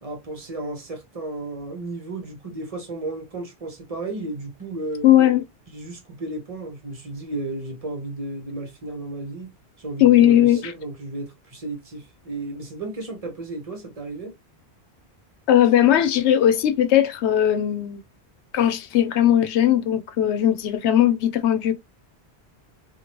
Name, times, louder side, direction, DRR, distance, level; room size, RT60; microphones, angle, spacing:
voice 1, 0.0-5.1 5.7-9.5 9.8-14.3, right 2 dB, 35° right, 0.9 m, -33 dB
voice 2, 5.0-5.4 10.0-10.7 15.5-18.0 18.5-21.8, left 11 dB, 85° left, 0.9 m, -18 dB
2.9 x 2.4 x 2.9 m
omnidirectional pair, 1.1 m